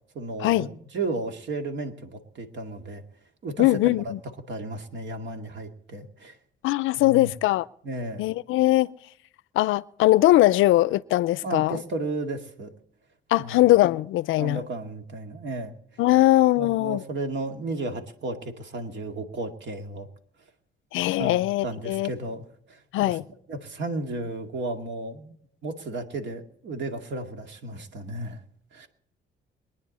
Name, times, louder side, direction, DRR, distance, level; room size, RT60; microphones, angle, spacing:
voice 1, 0.1-3.0 3.4-4.1 4.5-6.4 7.0-7.3 7.8-8.3 11.4-12.7 13.4-13.6 14.4-15.7 16.6-20.1 21.2-23.2 23.5-25.3 25.6-28.4 28.7-28.9, right 2 dB, 65° right, 2.2 m, -34 dB
voice 2, 3.6-4.2 6.6-7.7 8.2-8.9 9.6-11.8 13.3-14.6 16.0-17.0 20.9-22.1 22.9-23.2, left 16 dB, 85° left, 0.5 m, -21 dB
23.0 x 9.9 x 4.2 m
cardioid pair, 90°, 20 cm